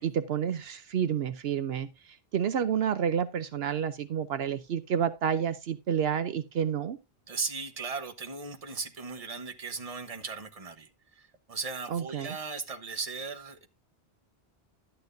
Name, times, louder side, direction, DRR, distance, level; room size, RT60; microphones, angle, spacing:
voice 1, 0.0-7.0 11.9-12.4, right 8 dB, 75° right, 0.9 m, -30 dB
voice 2, 7.3-13.7, right 4 dB, 35° right, 1.2 m, -37 dB
12.0 x 8.9 x 2.6 m
omnidirectional pair, 1.1 m